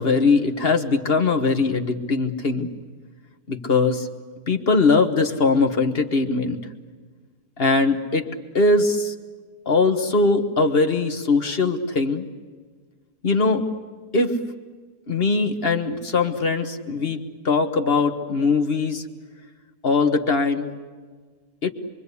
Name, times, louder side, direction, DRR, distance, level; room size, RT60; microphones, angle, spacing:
voice 1, 0.0-2.7 3.5-4.1 4.5-6.7 7.6-8.3 8.5-9.1 9.6-12.2 13.2-13.7 14.1-14.4 15.1-19.0 19.8-20.7 21.6-21.7, left 3 dB, 40° left, 6 dB, 1.6 m, -21 dB
26.0 x 24.0 x 8.3 m, 1.4 s
omnidirectional pair, 1.6 m